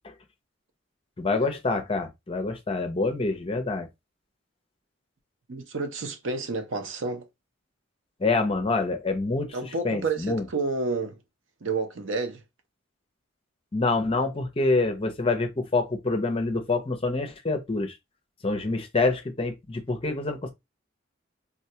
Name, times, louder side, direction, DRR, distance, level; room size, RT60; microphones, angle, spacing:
voice 1, 1.2-3.9 8.2-9.6 9.8-10.4 13.7-17.9 18.4-20.5, left 3 dB, 30° left, 0.6 m, -26 dB
voice 2, 5.5-7.3 9.5-11.2 11.6-12.4, right 3 dB, 75° right, 0.6 m, -30 dB
3.7 x 2.2 x 2.8 m
head